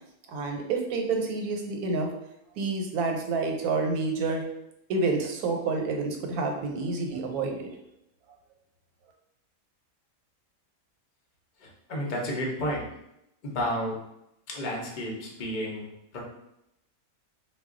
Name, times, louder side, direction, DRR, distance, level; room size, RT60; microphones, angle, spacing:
voice 1, 0.3-2.1 2.6-4.4 4.9-7.7, right 3 dB, 90° right, 2 dB, 1.1 m, -28 dB
voice 2, 11.6-12.9 13.4-14.0 14.5-16.2, equal, 50° left, -2 dB, 0.6 m, -32 dB
2.3 x 2.2 x 3.6 m, 0.83 s
omnidirectional pair, 1.5 m